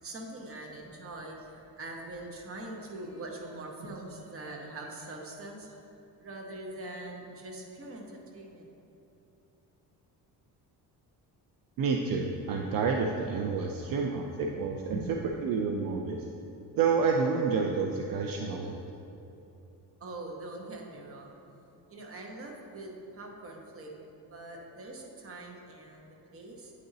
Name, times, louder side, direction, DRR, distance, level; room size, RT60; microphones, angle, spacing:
voice 1, 0.0-5.8 6.2-8.7 13.8-13.9 14.9-15.1 20.0-21.4 21.9-26.7, right 2 dB, 35° right, 0 dB, 1.0 m, -43 dB
voice 2, 11.8-15.0 15.4-16.3 16.8-18.8, right 5 dB, 65° right, 2 dB, 0.5 m, -29 dB
8.7 x 4.0 x 3.9 m, 3.0 s
cardioid pair, 120°, 38 cm